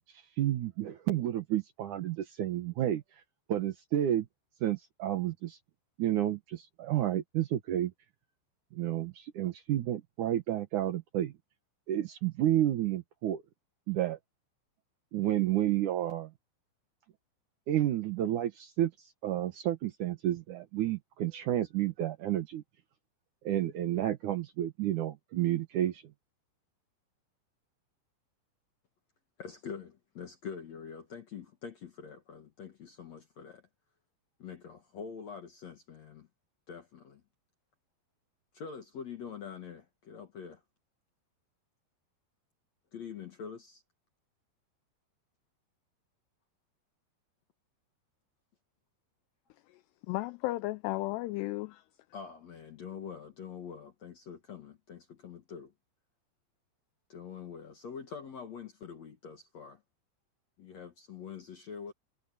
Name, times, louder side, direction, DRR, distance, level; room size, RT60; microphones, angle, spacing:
voice 1, 0.1-3.0 3.5-4.3 4.6-5.6 6.0-7.9 8.7-11.3 11.9-13.4 13.9-14.2 15.1-16.3 17.7-22.6 23.4-26.0, right 12 dB, 80° right, 1.8 m, -31 dB
voice 2, 29.4-33.7 34.4-36.3 36.7-37.2 38.5-40.6 42.9-43.8 52.1-55.7 57.1-59.8 60.6-61.9, left 6 dB, 60° left, 1.8 m, -45 dB
voice 3, 50.1-51.8, left 19 dB, 90° left, 2.3 m, -34 dB
omnidirectional pair, 5.4 m